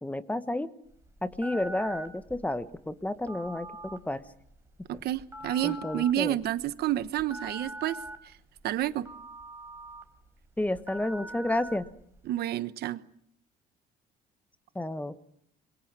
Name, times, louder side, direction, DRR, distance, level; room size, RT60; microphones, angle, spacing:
voice 1, 0.0-0.7 1.2-4.2 5.6-6.4 10.6-11.9 14.7-15.1, left 1 dB, 10° left, 1.3 m, -31 dB
Telephone, 0.9-12.3, right 1 dB, 15° right, 4.4 m, -44 dB
voice 2, 4.9-8.0 8.6-9.1 12.3-13.0, right 13 dB, 70° right, 1.1 m, -29 dB
27.5 x 23.0 x 6.1 m
cardioid pair, 110°, 17 cm